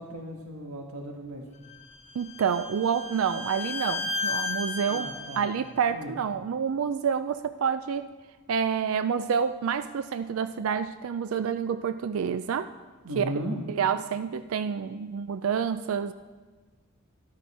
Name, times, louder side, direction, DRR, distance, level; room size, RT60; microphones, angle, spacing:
voice 1, 0.0-1.4 4.9-5.5 5.9-6.1 13.0-13.6, equal, 85° right, 1 dB, 1.6 m, -36 dB
Bowed string instrument, 1.7-5.5, left 3 dB, 30° left, 0.9 m, -34 dB
voice 2, 2.1-8.1 8.5-12.7 13.2-13.3 13.7-16.1, right 7 dB, 70° right, 12 dB, 0.4 m, -28 dB
12.5 x 11.5 x 4.3 m, 1.3 s
head